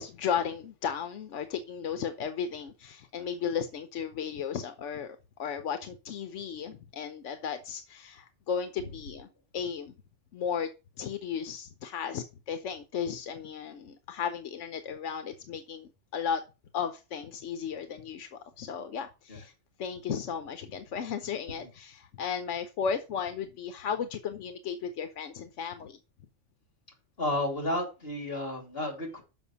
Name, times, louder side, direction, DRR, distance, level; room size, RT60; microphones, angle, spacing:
voice 1, 0.0-9.3 9.5-9.9 10.3-10.7 11.0-16.4 16.7-19.5 19.8-26.0, left 7 dB, 90° left, 1.1 m, -35 dB
voice 2, 3.1-3.5 8.8-8.9 19.3-19.4 21.5-21.7 27.2-29.2, left 1 dB, 55° left, 3.2 m, -33 dB
6.4 x 6.0 x 6.9 m
omnidirectional pair, 1.2 m